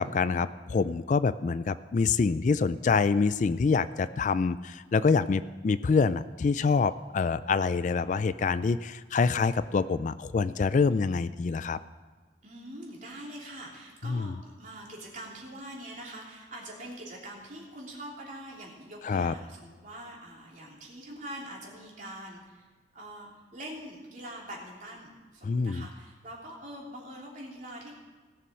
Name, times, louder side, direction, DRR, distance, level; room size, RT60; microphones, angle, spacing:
voice 1, 0.0-11.8 14.0-14.3 19.0-19.3 25.4-25.9, left 4 dB, 45° left, 15 dB, 0.3 m, -26 dB
voice 2, 12.4-22.7 22.9-27.9, right 1 dB, 45° right, -3 dB, 3.2 m, -44 dB
17.5 x 6.9 x 6.2 m, 1.4 s
head